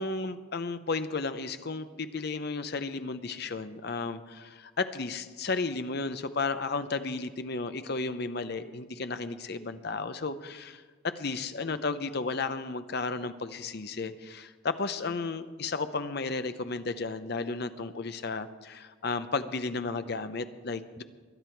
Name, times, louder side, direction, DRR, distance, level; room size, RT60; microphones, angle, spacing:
voice 1, 0.0-21.0, left 3 dB, 50° left, 11 dB, 0.7 m, -33 dB
21.0 x 11.0 x 4.6 m, 1.4 s
head